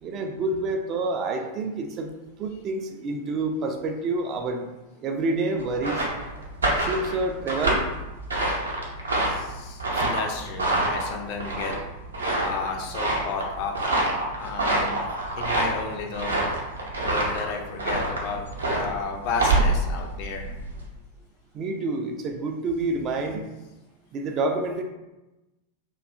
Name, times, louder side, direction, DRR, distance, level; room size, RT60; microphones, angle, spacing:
voice 1, 0.0-2.1 2.4-4.7 5.0-6.1 6.8-7.8 21.5-23.4 24.1-24.8, right 2 dB, 30° right, 4 dB, 0.3 m, -28 dB
sound 1, 5.6-20.9, right 2 dB, 75° right, 0.6 m, -26 dB
voice 2, 9.2-11.7 12.4-13.8 14.4-15.0 15.4-16.4 17.0-20.5, left 5 dB, 45° left, 2 dB, 0.4 m, -33 dB
2.6 x 2.2 x 2.4 m, 1.0 s
figure-of-eight pair, 90°, 0 cm